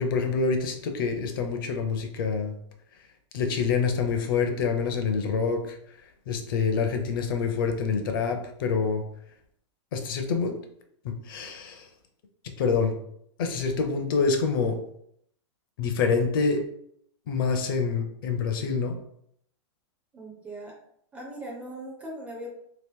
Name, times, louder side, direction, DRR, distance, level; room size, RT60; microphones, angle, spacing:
voice 1, 0.0-2.6 3.3-6.0 6.3-9.0 9.9-10.6 11.0-11.9 12.6-12.9 13.4-14.8 15.8-16.6 17.3-19.0, left 5 dB, 45° left, 5 dB, 0.5 m, -26 dB
voice 2, 20.1-20.7 21.1-22.5, right 1 dB, 10° right, -2 dB, 0.4 m, -39 dB
2.9 x 2.8 x 3.6 m, 0.70 s
supercardioid pair, 170°, 16 cm